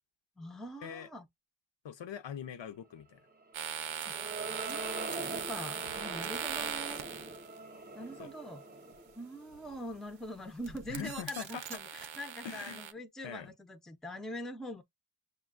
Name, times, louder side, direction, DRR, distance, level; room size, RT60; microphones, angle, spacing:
voice 1, 0.4-1.3 4.0-4.2 4.6-7.1 7.9-8.6 9.2-14.8, equal, ahead, 0.5 m, -43 dB
voice 2, 1.8-3.2 6.6-6.7 8.2-8.3 10.9-11.6 12.4-12.8 13.2-13.5, left 8 dB, 65° left, 0.6 m, -42 dB
sound 1, 3.5-10.1, right 2 dB, 20° right, 0.8 m, -44 dB
sound 2, 3.5-7.6 9.5-9.9 10.3-12.9, right 8 dB, 75° right, 0.6 m, -40 dB
6.6 x 2.2 x 2.4 m
wide cardioid pair, 80°, 48 cm